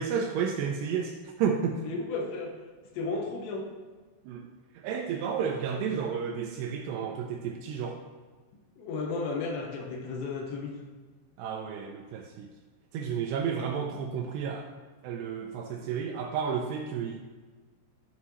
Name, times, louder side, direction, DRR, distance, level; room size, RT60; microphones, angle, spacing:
voice 1, 0.0-1.8 4.3-4.5 4.8-8.0 11.4-12.5 12.9-14.7 15.0-17.2, right 7 dB, 85° right, 3 dB, 2.5 m, -31 dB
voice 2, 1.8-2.5 2.9-3.7 8.8-10.8, left 3 dB, 75° left, 1 dB, 2.9 m, -33 dB
13.5 x 5.7 x 3.0 m, 1.4 s
omnidirectional pair, 5.3 m